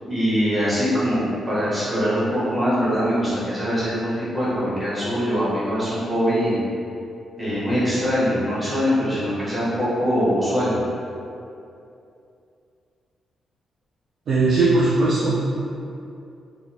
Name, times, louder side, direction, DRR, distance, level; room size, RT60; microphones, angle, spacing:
voice 1, 0.0-6.6 7.4-10.8, equal, 10° right, -11 dB, 0.9 m, -22 dB
voice 2, 14.3-15.4, right 3 dB, 50° right, -9 dB, 0.4 m, -18 dB
3.2 x 2.2 x 2.6 m, 2.6 s
wide cardioid pair, 175°, 0 cm